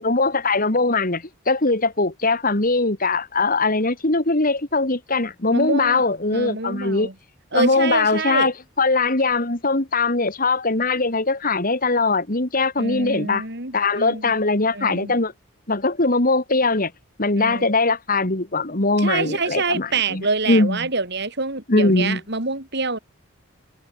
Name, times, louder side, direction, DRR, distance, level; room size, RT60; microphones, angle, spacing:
voice 1, 0.0-7.1 7.5-13.4 13.7-15.3 15.7-16.9 17.2-20.8 21.7-22.2, left 3 dB, 45° left, 2.5 m, -21 dB
voice 2, 5.5-6.0 6.3-7.1 7.5-8.5 12.8-14.3 14.7-15.2 17.4-17.7 19.0-23.0, right 3 dB, 55° right, 6.3 m, -26 dB
head